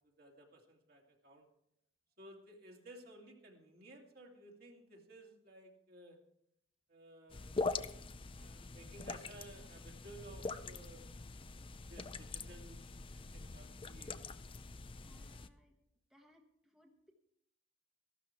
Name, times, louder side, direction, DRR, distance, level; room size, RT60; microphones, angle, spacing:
voice 1, 0.0-1.5 2.2-6.2 6.9-7.6 8.3-11.1 11.9-14.3, right 1 dB, 55° right, 0 dB, 2.6 m, -57 dB
sound 1, 7.3-15.5, left 3 dB, 30° left, 0.5 m, -43 dB
voice 2, 15.0-15.7 16.1-17.1, equal, 5° right, 1 dB, 1.2 m, -67 dB
14.5 x 12.0 x 4.6 m, 0.78 s
head